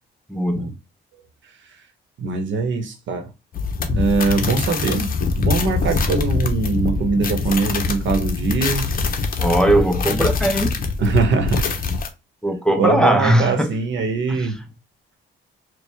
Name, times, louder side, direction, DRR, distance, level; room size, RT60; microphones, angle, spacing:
voice 1, 0.3-0.6 9.4-10.8 12.4-13.7 14.3-14.5, right 1 dB, 5° left, 0.7 m, -19 dB
voice 2, 2.2-3.3 3.8-8.9 11.0-11.7 12.8-14.6, right 4 dB, 70° right, 1.1 m, -22 dB
sound 1, 3.5-12.1, left 4 dB, 45° left, 0.8 m, -23 dB
4.6 x 2.3 x 3.4 m
cardioid pair, 90°, 20 cm